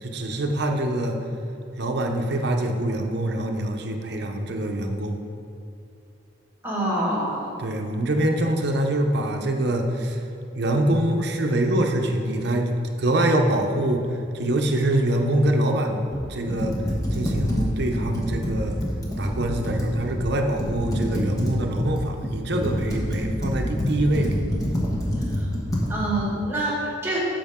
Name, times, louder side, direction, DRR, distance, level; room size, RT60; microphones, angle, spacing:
voice 1, 0.0-1.2 1.8-5.2 7.6-10.2 10.6-12.7 13.0-14.0 14.3-16.8 17.1-18.8 19.2-24.4, right 1 dB, 60° right, 3 dB, 0.8 m, -24 dB
voice 2, 6.6-7.5 25.4-25.5 25.9-27.2, right 1 dB, 10° right, -5 dB, 1.9 m, -26 dB
Computer keyboard, 16.1-20.3 20.6-25.9, equal, 20° left, 1.2 m, -27 dB
12.5 x 5.1 x 3.7 m, 2.6 s
head